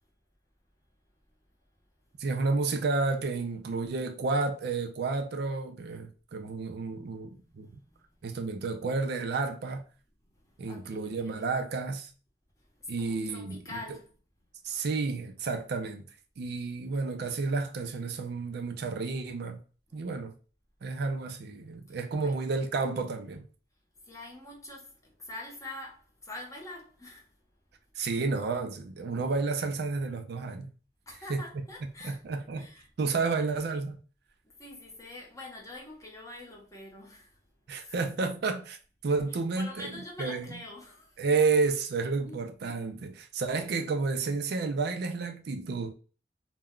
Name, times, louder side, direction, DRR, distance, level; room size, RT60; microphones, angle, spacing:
voice 1, 2.2-7.7 8.2-9.8 10.6-12.1 12.9-13.8 14.6-16.0 16.4-19.6 19.9-20.3 20.8-23.4 28.0-30.7 31.3-31.4 32.0-32.7 33.0-34.0 37.7-38.8 39.0-40.6 41.2-45.9, right 4 dB, 60° right, 0.4 m, -31 dB
voice 2, 7.4-8.0 10.4-11.4 12.7-14.1 19.9-20.0 21.9-22.3 24.0-27.3 31.1-32.2 32.6-32.9 34.4-37.4 37.7-38.0 39.6-41.2 42.2-42.4, left 2 dB, 20° left, 0.8 m, -45 dB
2.2 x 2.1 x 3.6 m
head